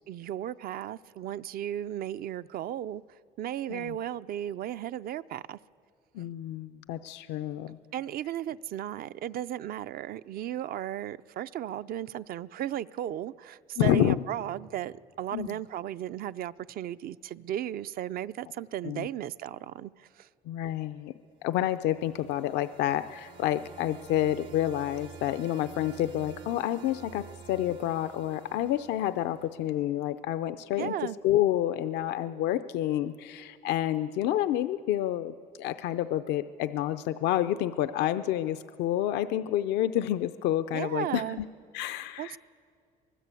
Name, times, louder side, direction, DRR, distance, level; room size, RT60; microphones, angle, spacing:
voice 1, 0.1-3.0 3.4-5.6 6.2-6.3 7.9-20.3 30.8-31.2 40.7-41.4 42.2-42.4, right 11 dB, 60° right, 0.5 m, -35 dB
voice 2, 6.1-7.8 13.8-14.2 15.3-15.6 18.8-19.1 20.5-21.1 21.4-30.9 31.2-41.5 41.7-42.4, left 12 dB, 85° left, 0.5 m, -29 dB
sound 1, 21.6-29.8, right 7 dB, 80° right, 1.7 m, -50 dB
23.5 x 20.0 x 8.3 m
cardioid pair, 110°, 17 cm